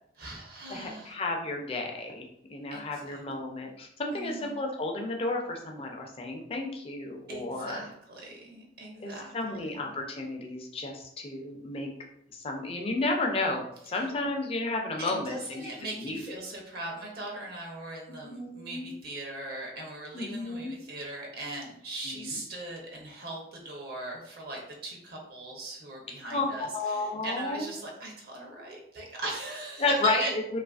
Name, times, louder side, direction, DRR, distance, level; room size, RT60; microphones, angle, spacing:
voice 1, 0.2-1.2 2.7-3.2 4.1-4.6 7.3-9.9 13.9-14.0 15.0-29.8 30.2-30.3, right 2 dB, 60° right, -1 dB, 0.6 m, -40 dB
voice 2, 0.7-7.9 9.0-11.9 12.3-15.7 16.0-16.4 18.1-18.9 20.1-20.8 22.0-22.4 26.3-26.5 26.7-27.7 29.8-30.6, left 2 dB, 35° left, 1 dB, 0.4 m, -32 dB
2.7 x 2.4 x 2.3 m, 0.75 s
head